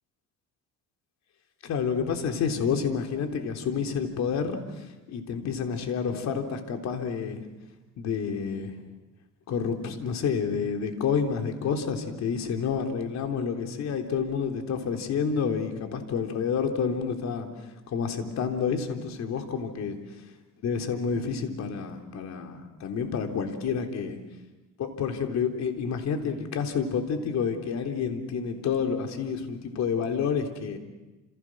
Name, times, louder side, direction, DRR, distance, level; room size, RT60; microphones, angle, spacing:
voice 1, 1.6-7.4 8.0-8.8 9.5-20.2 20.6-24.2 24.8-30.8, left 6 dB, 60° left, 4 dB, 3.7 m, -29 dB
29.0 x 28.5 x 6.3 m, 1.1 s
cardioid pair, 115°, 31 cm